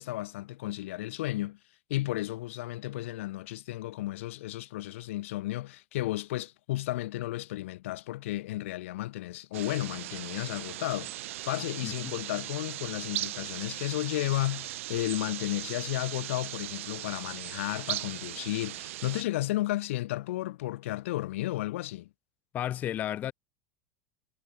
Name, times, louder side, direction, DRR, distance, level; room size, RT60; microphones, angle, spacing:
voice 1, 0.0-1.6 1.9-22.1, left 16 dB, 75° left, 0.9 m, -33 dB
sound 1, 9.5-19.2, right 16 dB, 80° right, 1.0 m, -38 dB
voice 2, 11.8-12.1 22.5-23.3, left 12 dB, 25° left, 0.6 m, -33 dB
supercardioid pair, 170°, 7 cm